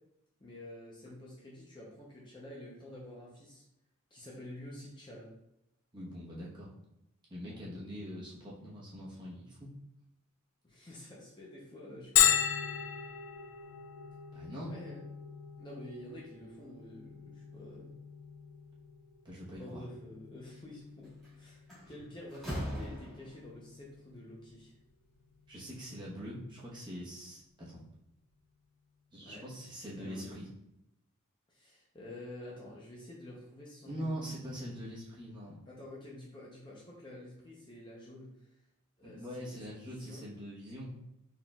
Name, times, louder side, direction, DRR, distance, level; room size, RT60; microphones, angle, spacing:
voice 1, 0.4-3.6 4.1-5.3 7.5-7.7 10.6-12.3 14.7-15.0 15.6-17.9 19.6-24.7 29.2-29.4 29.9-30.4 31.5-34.4 35.7-38.6 39.0-40.2, left 1 dB, 20° left, -4 dB, 0.6 m, -49 dB
voice 2, 5.9-6.7 7.3-9.8 14.3-14.7 19.2-19.8 25.5-27.8 29.1-30.5 33.8-35.6 39.0-40.9, equal, 20° right, -6 dB, 1.0 m, -43 dB
Bell, 12.2-27.6, left 10 dB, 65° left, 0.3 m, -37 dB
Slam, 21.0-21.3 21.7-23.6, equal, ahead, 1.3 m, -40 dB
4.2 x 3.7 x 2.3 m, 0.83 s
head